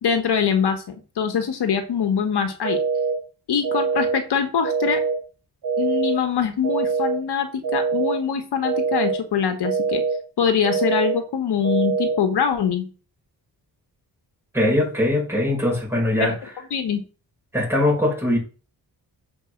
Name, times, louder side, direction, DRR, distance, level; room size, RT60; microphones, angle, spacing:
voice 1, 0.0-2.8 3.5-5.0 5.8-10.0 10.4-12.9 16.2-16.3 16.7-17.0, left 7 dB, 85° left, 1.5 m, -23 dB
sound 1, 2.6-3.1 3.6-4.1 4.6-5.1 5.6-6.1 6.6-7.1 7.6-8.1 8.6-9.1 9.6-10.1 10.6-11.1 11.6-12.1, right 5 dB, 65° right, 2.7 m, -23 dB
voice 2, 14.5-16.4 17.5-18.4, left 1 dB, 5° right, 5.7 m, -21 dB
7.2 x 5.1 x 6.5 m
wide cardioid pair, 150°, 39 cm